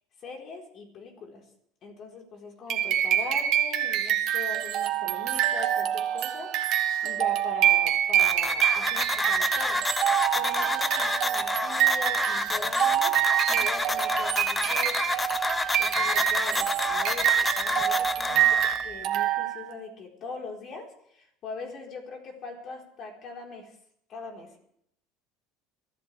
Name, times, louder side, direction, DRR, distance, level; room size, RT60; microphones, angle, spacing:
voice 1, 0.2-1.4 1.8-6.6 7.0-9.9 10.3-13.2 13.5-15.1 15.8-23.7 24.1-24.6, left 3 dB, 45° left, 1 dB, 4.2 m, -41 dB
sound 1, 2.7-19.7, right 11 dB, 55° right, 1.6 m, -26 dB
sound 2, 8.2-18.8, left 3 dB, 10° left, 0.6 m, -29 dB
23.0 x 14.0 x 3.4 m, 0.71 s
cardioid pair, 135°, 0 cm